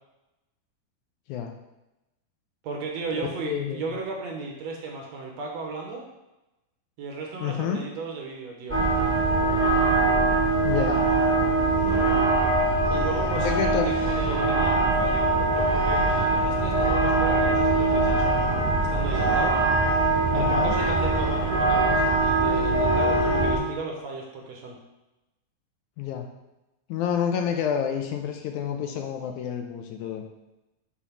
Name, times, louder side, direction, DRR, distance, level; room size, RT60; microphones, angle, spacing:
voice 1, 2.6-6.0 7.0-8.8 12.9-18.4 18.9-19.6 20.3-24.8, right 3 dB, 65° right, 0 dB, 2.0 m, -35 dB
voice 2, 3.2-3.9 7.4-7.8 10.6-11.0 13.4-14.0 20.3-20.8 26.0-26.3 26.9-30.2, left 8 dB, 80° left, 4 dB, 2.0 m, -29 dB
sound 1, 8.7-23.6, right 2 dB, 5° right, 1.1 m, -22 dB
7.1 x 4.5 x 5.8 m, 0.97 s
omnidirectional pair, 3.7 m